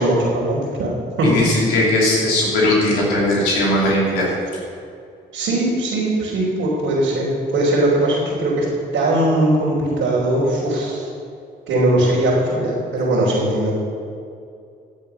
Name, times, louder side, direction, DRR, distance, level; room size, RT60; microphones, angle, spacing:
voice 1, 0.0-1.3 5.3-8.7 8.9-11.1 11.7-13.7, right 1 dB, 80° right, -8 dB, 3.6 m, -19 dB
voice 2, 1.2-4.3, left 1 dB, 85° left, -4 dB, 3.1 m, -18 dB
15.5 x 7.7 x 5.7 m, 2.4 s
hypercardioid pair, 50°, 21 cm